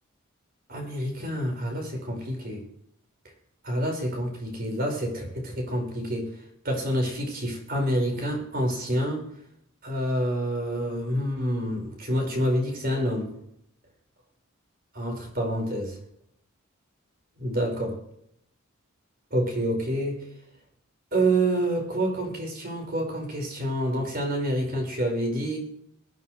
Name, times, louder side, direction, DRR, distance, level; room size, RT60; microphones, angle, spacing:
voice 1, 0.7-2.6 3.6-6.3 6.6-9.2 9.8-13.3 14.9-16.0 17.4-18.0 19.3-20.3 21.1-25.6, right 1 dB, 50° right, 2 dB, 5.2 m, -27 dB
24.0 x 9.3 x 3.3 m, 0.73 s
head